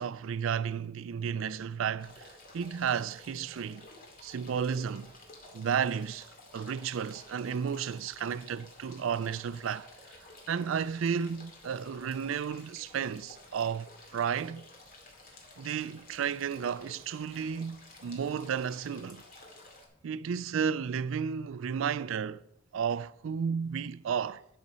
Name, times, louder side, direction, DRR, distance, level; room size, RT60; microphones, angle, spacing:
voice 1, 0.0-2.3 2.5-3.9 4.2-5.1 5.5-6.3 6.5-9.9 10.5-14.7 15.6-19.2 20.0-22.4 22.7-24.5, right 7 dB, 75° right, 0.4 m, -33 dB
sound 1, 2.0-19.9, left 2 dB, 45° left, 2.3 m, -53 dB
11.5 x 6.2 x 5.6 m
head